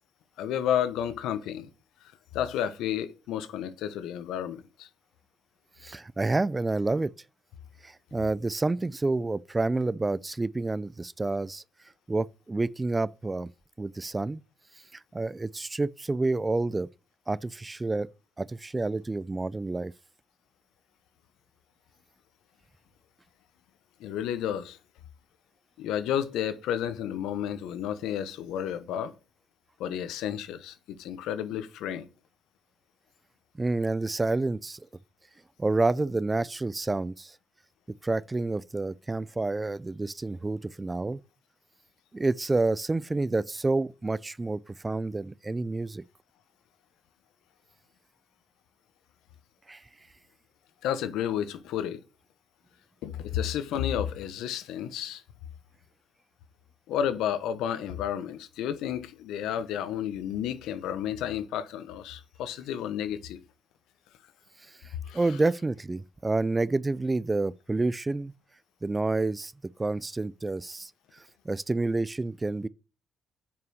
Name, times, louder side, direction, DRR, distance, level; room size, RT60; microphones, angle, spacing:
voice 1, 0.4-1.7 2.3-4.9 24.0-24.8 25.8-29.1 29.8-32.1 50.8-52.0 53.0-55.2 56.9-63.4 65.0-65.2, left 9 dB, 90° left, 1.2 m, -31 dB
voice 2, 5.8-7.1 7.8-11.6 12.1-13.5 13.8-14.4 14.9-16.9 17.3-18.1 18.4-19.9 33.6-34.8 35.6-37.4 38.0-41.2 42.1-46.0 49.7-49.8 64.8-68.3 68.8-69.5 69.8-70.9 71.4-72.7, right 2 dB, 20° right, 0.5 m, -29 dB
9.3 x 5.7 x 6.3 m
cardioid pair, 90°, 0 cm